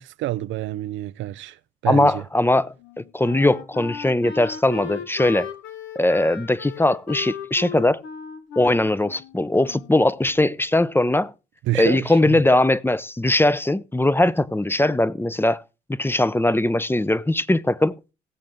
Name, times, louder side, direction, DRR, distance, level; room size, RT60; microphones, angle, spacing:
voice 1, 0.0-2.2 11.6-12.4, right 15 dB, 70° right, 0.6 m, -28 dB
voice 2, 1.9-5.5 5.9-8.0 8.6-11.3 11.8-15.6 15.9-17.9, left 1 dB, 10° left, 0.8 m, -20 dB
Wind instrument woodwind instrument, 2.8-10.1, left 7 dB, 70° left, 1.8 m, -37 dB
17.0 x 7.5 x 3.7 m
hypercardioid pair, 50°, 21 cm